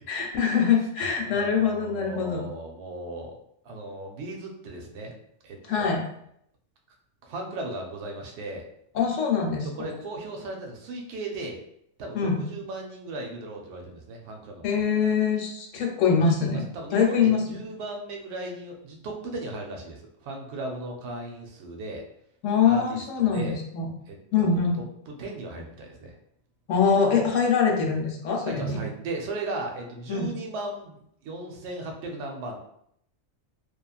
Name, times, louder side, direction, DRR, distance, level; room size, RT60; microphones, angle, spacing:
voice 1, 0.1-2.4 5.7-6.0 8.9-9.7 12.1-12.5 14.6-16.6 16.9-17.6 22.4-23.9 24.3-24.7 26.7-28.8 30.1-30.3, left 6 dB, 75° left, 1 dB, 0.9 m, -23 dB
voice 2, 1.2-3.4 3.6-5.1 5.4-6.0 7.2-8.6 9.6-11.6 12.0-14.8 16.5-22.0 22.6-23.6 24.1-24.7 25.1-26.2 28.4-32.6, right 2 dB, 65° right, 2 dB, 0.8 m, -37 dB
2.9 x 2.3 x 2.3 m, 0.72 s
omnidirectional pair, 1.4 m